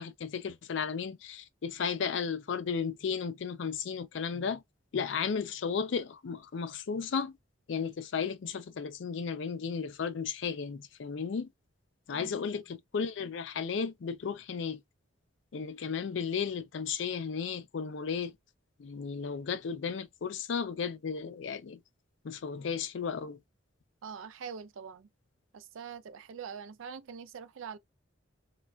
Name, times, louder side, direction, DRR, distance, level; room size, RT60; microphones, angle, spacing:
voice 1, 0.0-4.6 4.9-7.4 7.7-11.5 12.1-14.8 15.5-18.4 18.8-21.8 22.2-23.4, left 6 dB, 65° left, 0.4 m, -34 dB
voice 2, 12.1-12.4 24.0-25.1 25.5-27.8, right 6 dB, 85° right, 0.4 m, -44 dB
3.3 x 2.2 x 2.3 m
head